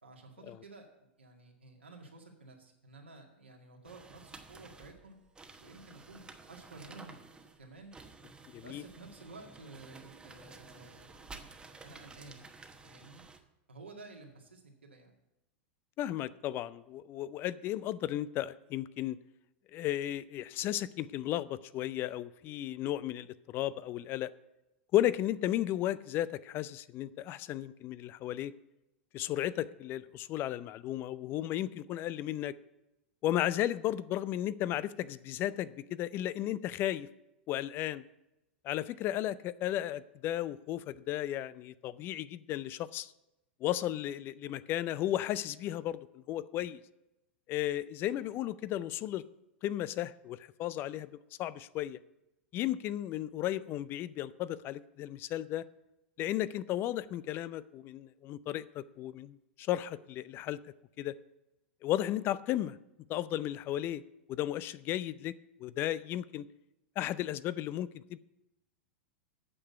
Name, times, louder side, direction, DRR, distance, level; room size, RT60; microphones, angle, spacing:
voice 1, 0.0-5.2 5.6-7.2 7.6-7.9 8.6-12.4 12.8-13.2 13.7-15.1, right 3 dB, 85° right, 1 dB, 2.0 m, -52 dB
sound 1, 3.8-13.4, right 3 dB, 15° right, 1.1 m, -53 dB
voice 2, 8.5-8.8 16.0-19.2 19.7-24.3 24.9-28.5 29.1-32.5 33.2-37.1 37.5-38.0 38.6-43.1 43.6-46.8 47.5-49.2 49.6-51.1 51.4-52.0 52.5-55.6 56.2-60.6 61.0-61.1 61.8-62.8 63.1-64.0 64.3-65.3 65.6-66.5 67.0-68.2, left 13 dB, 35° left, 17 dB, 0.4 m, -34 dB
8.8 x 6.6 x 7.8 m, 0.91 s
figure-of-eight pair, 95°, 6 cm